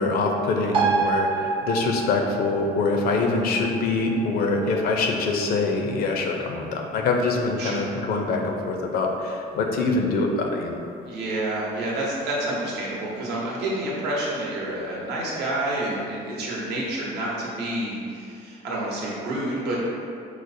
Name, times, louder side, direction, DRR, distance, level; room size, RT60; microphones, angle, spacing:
voice 1, 0.0-10.8, left 3 dB, 65° left, 2 dB, 0.4 m, -24 dB
sound 1, 0.7-7.7 8.0-8.1, right 4 dB, 30° right, 0.4 m, -30 dB
voice 2, 11.0-19.8, right 1 dB, 75° right, -5 dB, 0.9 m, -29 dB
4.7 x 2.0 x 2.6 m, 2.4 s
cardioid pair, 110°, 17 cm